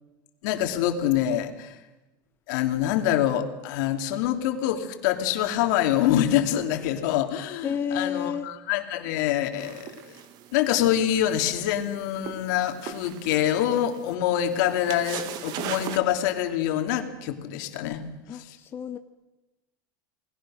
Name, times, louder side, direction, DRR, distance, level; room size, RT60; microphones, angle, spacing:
voice 1, 0.4-1.7 2.5-10.1 10.5-18.0 18.3-18.6, left 11 dB, 65° left, 6 dB, 2.9 m, -25 dB
voice 2, 7.6-8.5 18.3-19.0, left 7 dB, 20° left, 8 dB, 0.8 m, -30 dB
sound 1, 9.6-16.0, right 10 dB, 40° right, 1.7 m, -39 dB
29.5 x 20.5 x 6.5 m, 1.1 s
supercardioid pair, 165°, 10 cm